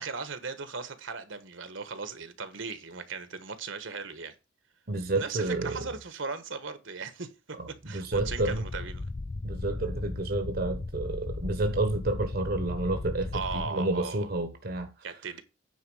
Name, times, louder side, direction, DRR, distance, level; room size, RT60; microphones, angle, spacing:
voice 1, 0.0-4.3 5.1-7.6 7.9-9.0 13.3-14.3 15.0-15.4, right 4 dB, 70° right, 1.4 m, -37 dB
voice 2, 4.9-5.8 7.6-8.6 9.4-14.9, right 2 dB, 50° right, 1.1 m, -30 dB
sound 1, 8.1-13.7, left 2 dB, 25° left, 0.4 m, -36 dB
9.4 x 4.4 x 7.1 m
head